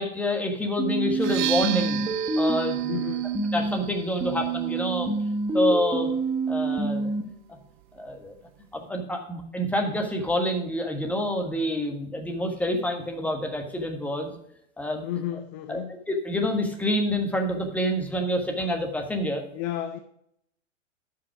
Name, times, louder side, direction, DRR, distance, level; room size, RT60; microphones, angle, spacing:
voice 1, 0.0-2.0 2.4-3.0 3.5-5.1 5.5-6.1 6.5-7.1 7.5-7.6 7.9-8.3 8.7-14.3 14.8-15.0 15.7-15.8 16.1-19.4, equal, 5° left, 1.5 m, -27 dB
sound 1, 0.8-3.8 4.2-7.2, right 3 dB, 10° right, 1.3 m, -27 dB
sound 2, 1.1-8.9, right 14 dB, 40° right, 0.6 m, -37 dB
voice 2, 2.9-3.3 15.0-15.9 19.5-20.0, left 11 dB, 30° left, 0.6 m, -32 dB
11.0 x 5.7 x 4.8 m
hypercardioid pair, 120°, 38 cm